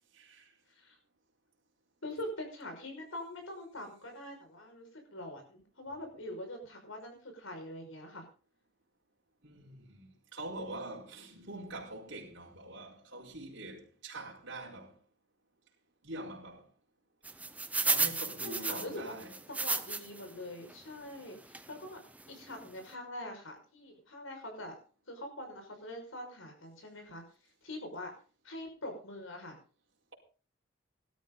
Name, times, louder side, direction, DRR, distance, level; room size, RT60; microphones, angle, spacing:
voice 1, 0.1-0.5 9.4-15.0 16.0-16.6 17.8-19.3, right 1 dB, 65° right, 4.5 m, -44 dB
voice 2, 2.0-8.2 18.4-22.0 22.3-24.8 25.1-27.2 27.6-28.1 28.4-29.6, left 1 dB, 80° left, 5.8 m, -44 dB
sound 1, 17.2-20.3 20.7-20.8 21.5-21.7 22.2-22.3 22.5-22.7, right 3 dB, 5° right, 0.7 m, -33 dB
18.0 x 12.5 x 3.9 m
head